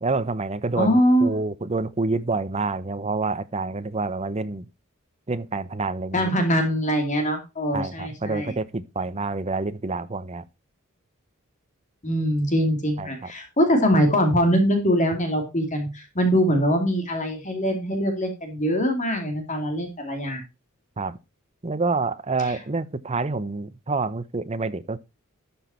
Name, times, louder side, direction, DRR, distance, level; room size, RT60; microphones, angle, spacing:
voice 1, 0.0-4.7 5.3-6.3 7.7-10.4 13.0-13.3 21.0-21.2 21.6-25.0, right 3 dB, 30° right, 0.8 m, -27 dB
voice 2, 0.8-1.3 6.1-8.5 12.0-20.4 22.4-22.6, equal, 35° left, 2.7 m, -22 dB
12.5 x 6.1 x 4.3 m
head